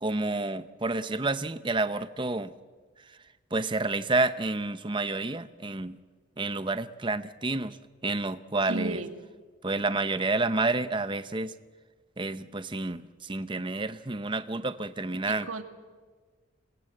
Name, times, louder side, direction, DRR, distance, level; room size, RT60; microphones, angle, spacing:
voice 1, 0.0-2.5 3.5-6.0 6.4-7.8 8.0-9.0 9.6-11.5 12.2-15.5, right 3 dB, 25° right, 12 dB, 0.7 m, -29 dB
voice 2, 8.6-9.1 15.2-15.6, right 2 dB, 85° right, 7 dB, 2.0 m, -34 dB
27.0 x 20.0 x 7.8 m, 1.4 s
head